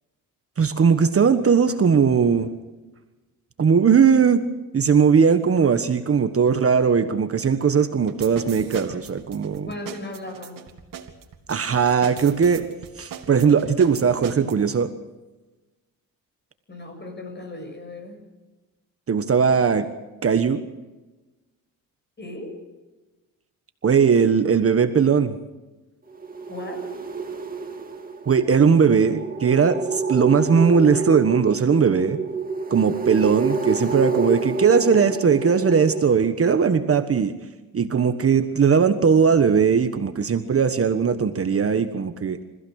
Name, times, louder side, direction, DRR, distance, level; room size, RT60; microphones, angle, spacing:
voice 1, 0.6-2.5 3.6-4.4 4.7-9.7 11.5-12.7 13.0-14.9 19.1-19.9 20.2-20.7 23.8-25.4 28.3-32.2 32.7-37.3 37.7-42.4, right 6 dB, 40° right, 9 dB, 1.4 m, -19 dB
sound 1, 8.1-14.5, right 8 dB, 70° right, 2.4 m, -39 dB
voice 2, 9.6-10.7 16.7-18.2 22.2-22.5 26.5-26.8, left 1 dB, 30° left, 5 dB, 7.2 m, -36 dB
sound 2, 26.1-36.0, right 4 dB, 25° right, 2.5 m, -29 dB
27.5 x 15.5 x 6.5 m, 1.1 s
cardioid pair, 90°, 34 cm